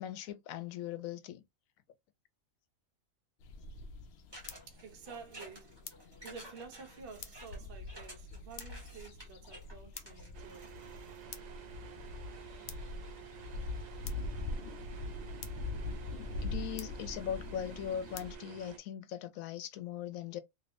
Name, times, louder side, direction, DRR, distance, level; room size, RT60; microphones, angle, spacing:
voice 1, 0.0-1.4 16.4-20.4, left 10 dB, 85° left, 1.0 m, -40 dB
sound 1, 3.4-18.3, left 3 dB, 65° left, 0.7 m, -43 dB
sound 2, 4.3-11.2, equal, 20° right, 1.5 m, -52 dB
voice 2, 4.7-10.8, right 5 dB, 50° right, 0.8 m, -51 dB
sound 3, 10.3-18.8, right 10 dB, 90° right, 0.3 m, -50 dB
3.1 x 2.9 x 2.5 m
omnidirectional pair, 1.4 m